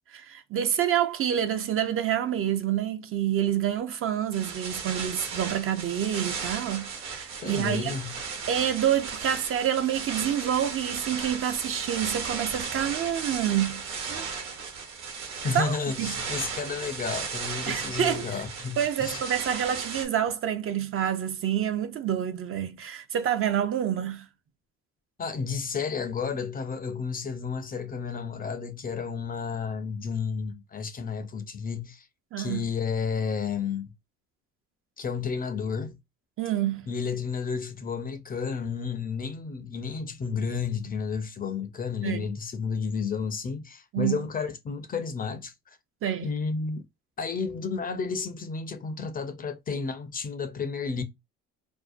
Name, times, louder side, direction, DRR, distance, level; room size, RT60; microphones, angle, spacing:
voice 1, 0.1-7.9 8.5-13.8 14.1-14.3 15.5-16.1 17.7-18.4 18.8-24.3 32.3-32.7 36.4-36.8 42.0-42.3 43.9-44.2 46.0-46.3, right 10 dB, 45° right, 0.5 m, -27 dB
sound 1, 4.3-20.1, right 5 dB, 65° right, 1.1 m, -35 dB
voice 2, 7.4-8.2 15.4-19.2 25.2-32.1 32.4-33.9 35.0-36.0 36.9-45.8 46.2-46.8 47.2-51.0, left 5 dB, 30° left, 0.5 m, -32 dB
2.6 x 2.1 x 2.4 m
supercardioid pair, 85°, 30 cm